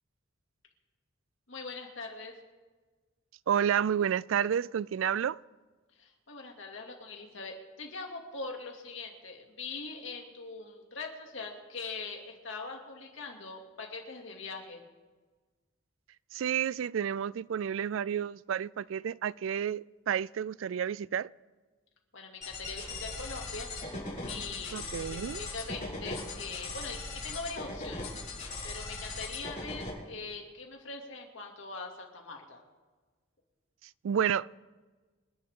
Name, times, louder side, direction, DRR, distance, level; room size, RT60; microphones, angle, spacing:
voice 1, 1.5-2.4 6.0-14.8 22.1-23.7 24.3-25.1 25.4-28.1 28.6-32.6, left 4 dB, 75° left, 2.5 m, -42 dB
voice 2, 3.5-5.4 16.3-21.3 24.7-25.4 34.0-34.6, right 8 dB, 80° right, 0.3 m, -30 dB
sound 1, 22.4-29.9, left 2 dB, 40° left, 6.1 m, -39 dB
26.5 x 11.0 x 3.7 m
head